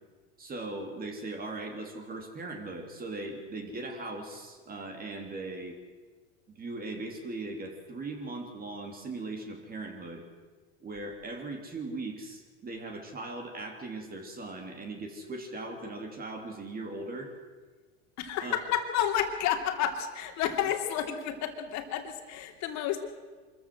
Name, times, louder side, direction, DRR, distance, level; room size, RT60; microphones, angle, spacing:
voice 1, 0.4-5.8 6.5-10.2 10.8-17.3 18.4-18.5, right 2 dB, 25° right, 3 dB, 3.3 m, -39 dB
voice 2, 18.2-23.0, left 10 dB, 55° left, 5 dB, 3.0 m, -30 dB
24.5 x 14.5 x 7.8 m, 1.4 s
supercardioid pair, 110°, 34 cm